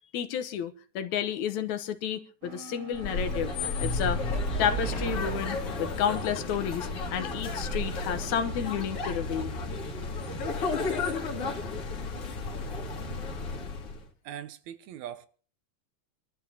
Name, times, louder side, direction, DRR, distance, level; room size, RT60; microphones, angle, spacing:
voice 1, 0.1-3.5 3.8-4.2 4.6-9.6, left 8 dB, 75° left, 2.3 m, -31 dB
sound 1, 2.4-9.2, right 2 dB, 50° right, 4.8 m, -46 dB
sound 2, 2.9-14.0, left 3 dB, 50° left, 3.2 m, -33 dB
sound 3, 3.8-7.3, right 2 dB, 25° left, 2.6 m, -35 dB
voice 2, 14.2-15.3, right 10 dB, 75° right, 2.1 m, -41 dB
26.0 x 13.0 x 2.8 m
omnidirectional pair, 3.5 m